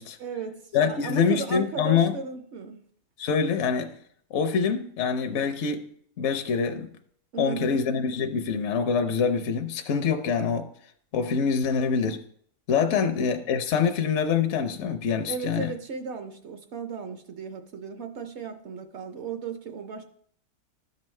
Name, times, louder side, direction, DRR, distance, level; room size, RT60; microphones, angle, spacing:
voice 1, 0.2-0.6 0.9-2.8 7.3-7.8 12.9-13.1 15.3-20.0, right 5 dB, 60° right, 0.8 m, -35 dB
voice 2, 0.7-2.1 3.2-4.0 4.3-5.9 6.2-6.9 7.4-10.7 11.1-12.2 12.7-15.7, left 6 dB, 65° left, 0.8 m, -25 dB
12.5 x 5.3 x 3.2 m
omnidirectional pair, 1.6 m